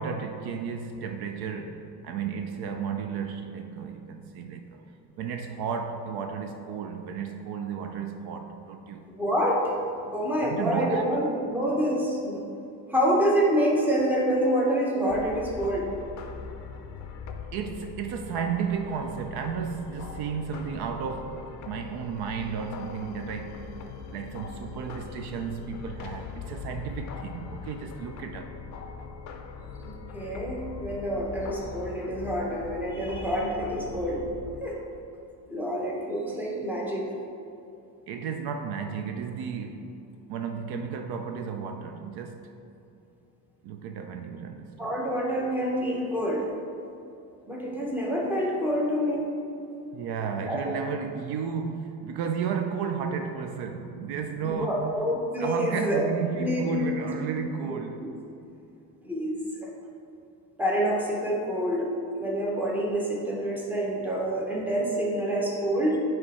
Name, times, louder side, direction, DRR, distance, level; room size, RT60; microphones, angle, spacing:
voice 1, 0.0-4.9 5.2-9.0 10.1-10.2 10.4-11.1 17.5-23.8 24.1-28.6 38.1-42.5 43.6-44.9 49.9-54.9 55.4-58.0, right 6 dB, 65° right, 0.5 m, -33 dB
voice 2, 9.2-9.7 10.1-12.4 12.9-15.9 29.8-34.2 34.6-34.8 35.5-37.1 44.8-46.4 47.5-49.2 49.6-49.7 50.5-50.7 54.4-56.1 56.4-57.1 58.0-58.1 59.0-59.3 59.6-59.7 60.6-61.9 62.1-66.0, equal, 5° right, 0.9 m, -27 dB
sound 1, 15.1-34.6, left 5 dB, 45° left, 0.5 m, -41 dB
9.5 x 3.2 x 4.2 m
cardioid pair, 145°, 42 cm